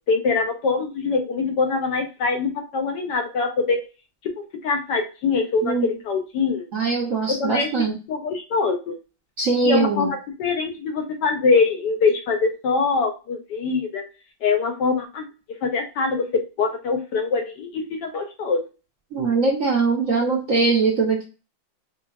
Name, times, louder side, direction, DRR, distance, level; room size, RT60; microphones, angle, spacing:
voice 1, 0.1-3.8 4.2-4.3 4.6-6.7 7.3-9.0 9.6-10.1 10.4-14.0 14.4-15.3 15.6-18.6, left 4 dB, 70° left, 3 dB, 1.1 m, -23 dB
voice 2, 6.7-7.9 9.4-10.1 19.1-21.2, right 4 dB, 65° right, -2 dB, 0.8 m, -21 dB
4.5 x 2.4 x 2.3 m, 0.31 s
omnidirectional pair, 2.1 m